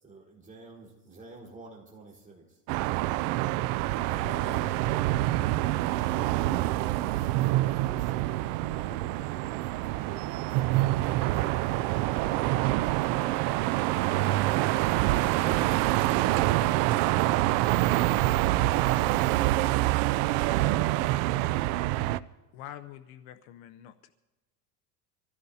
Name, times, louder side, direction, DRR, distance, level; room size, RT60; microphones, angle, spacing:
voice 1, 0.0-2.6 4.0-6.4 7.0-8.3 9.5-9.6 9.9-12.0, right 2 dB, 15° right, -3 dB, 4.5 m, -48 dB
sound 1, 2.7-22.2, right 16 dB, 50° right, 0.5 m, -26 dB
voice 2, 7.8-9.2 12.0-17.2, left 1 dB, 10° left, 0 dB, 2.5 m, -53 dB
voice 3, 22.5-24.1, left 11 dB, 60° left, 10 dB, 0.9 m, -46 dB
25.5 x 15.5 x 2.8 m, 1.2 s
supercardioid pair, 130°, 47 cm